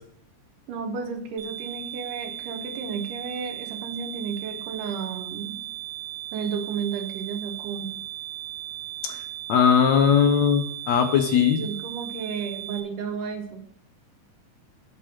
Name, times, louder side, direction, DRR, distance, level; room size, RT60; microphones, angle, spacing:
voice 1, 0.7-5.6 6.3-8.0 11.3-13.6, right 6 dB, 90° right, 5 dB, 2.9 m, -33 dB
sound 1, 1.4-12.8, right 12 dB, 75° right, 3.2 m, -37 dB
voice 2, 9.5-11.6, left 7 dB, 70° left, 7 dB, 2.0 m, -19 dB
8.4 x 6.1 x 7.4 m, 0.68 s
omnidirectional pair, 3.6 m